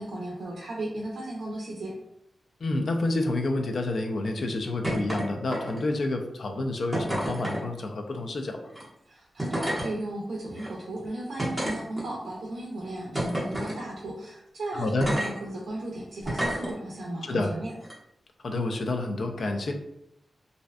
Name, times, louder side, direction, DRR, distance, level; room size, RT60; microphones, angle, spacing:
voice 1, 0.0-1.9 9.1-17.7, right 1 dB, 85° right, -3 dB, 0.4 m, -35 dB
voice 2, 2.6-8.7 14.8-15.1 17.2-17.5 18.4-19.7, left 2 dB, 65° left, 4 dB, 0.3 m, -29 dB
sound 1, 4.8-5.2 5.5-6.0 6.9-7.6 8.7-8.8 9.4-9.9 10.6-10.7 11.4-12.3 13.1-13.8 15.0-15.3 16.2-16.7 17.8-17.9, right 1 dB, 10° right, 0.8 m, -29 dB
2.5 x 2.1 x 2.3 m, 0.79 s
wide cardioid pair, 115°, 0 cm